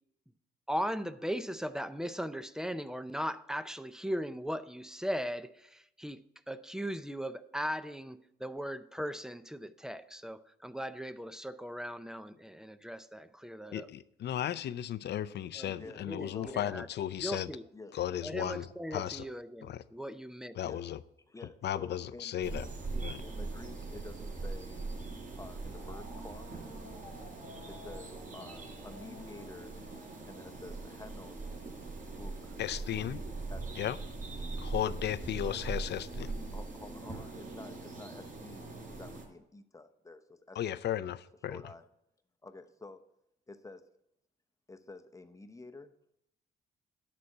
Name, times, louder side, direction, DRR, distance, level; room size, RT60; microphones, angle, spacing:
voice 1, 0.7-13.9 15.5-15.8 16.1-16.9 17.2-17.7 18.2-20.6, equal, 5° right, 0.5 m, -38 dB
voice 2, 13.7-17.5 17.9-18.6 18.9-19.2 19.6-19.8 20.6-21.0 21.6-22.6 23.0-23.2 32.6-33.2 33.8-34.0 34.6-36.3 40.6-41.2 41.4-41.6, left 11 dB, 60° left, 0.5 m, -35 dB
voice 3, 15.7-16.1 16.3-16.7 17.7-18.0 20.6-20.9 21.3-24.9 25.4-26.6 27.7-29.7 30.3-31.4 32.2-32.6 33.5-33.8 35.4-35.7 36.5-40.8 41.4-41.9 42.4-43.0 43.5-43.8 44.7-45.9, left 3 dB, 15° left, 0.8 m, -50 dB
sound 1, 22.4-39.2, right 3 dB, 45° right, 4.5 m, -41 dB
11.5 x 4.2 x 7.7 m
cardioid pair, 90°, 20 cm